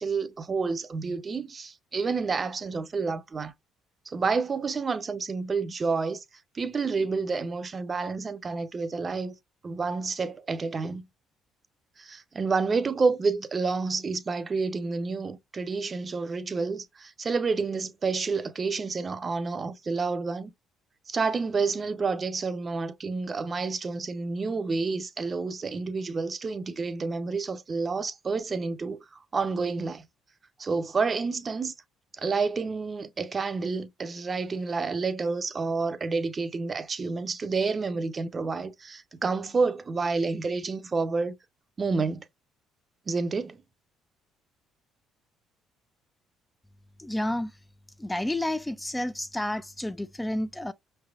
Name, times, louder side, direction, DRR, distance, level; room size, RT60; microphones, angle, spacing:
voice 1, 0.0-3.5 4.1-6.2 6.5-9.3 9.6-11.1 12.0-20.5 21.1-30.0 30.6-31.7 32.2-41.3 41.8-42.2 43.1-43.6, right 4 dB, 35° right, 0.6 m, -29 dB
voice 2, 47.0-47.5 48.0-50.7, left 1 dB, 10° left, 0.3 m, -30 dB
5.4 x 3.3 x 2.3 m
cardioid pair, 90°, 0 cm